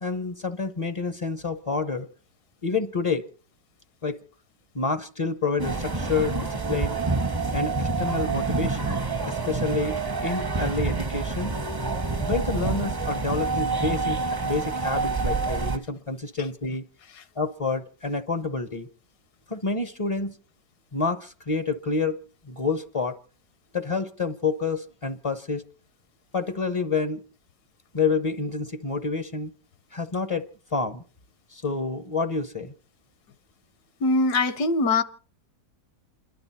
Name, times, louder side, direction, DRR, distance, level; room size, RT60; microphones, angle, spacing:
voice 1, 0.0-2.1 2.6-3.2 4.0-4.2 4.7-7.0 7.5-9.0 9.2-10.0 10.2-11.5 12.2-16.8 17.4-18.9 19.5-20.4 20.9-22.2 22.4-23.2 23.7-25.6 26.3-27.2 27.9-29.5 29.9-31.0 31.5-32.7, left 4 dB, 40° left, 0.4 m, -28 dB
sound 1, 5.6-15.8, right 4 dB, 25° right, 0.5 m, -27 dB
voice 2, 34.0-35.0, left 3 dB, 70° left, 1.4 m, -22 dB
28.5 x 11.5 x 4.2 m
omnidirectional pair, 1.8 m